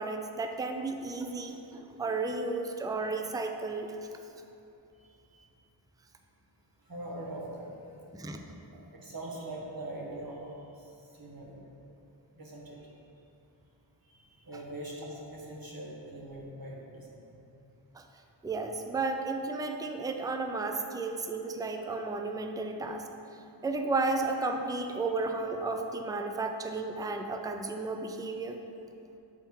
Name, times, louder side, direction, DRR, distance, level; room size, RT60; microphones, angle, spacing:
voice 1, 0.0-3.9 8.1-8.4 18.4-23.1 23.6-28.6, right 3 dB, 10° right, 4 dB, 0.3 m, -33 dB
voice 2, 6.9-7.7 8.9-10.5 11.2-11.6 12.4-12.8 14.1-17.2, right 1 dB, 45° right, -3 dB, 1.2 m, -42 dB
6.9 x 3.6 x 4.4 m, 2.7 s
wide cardioid pair, 75°, 47 cm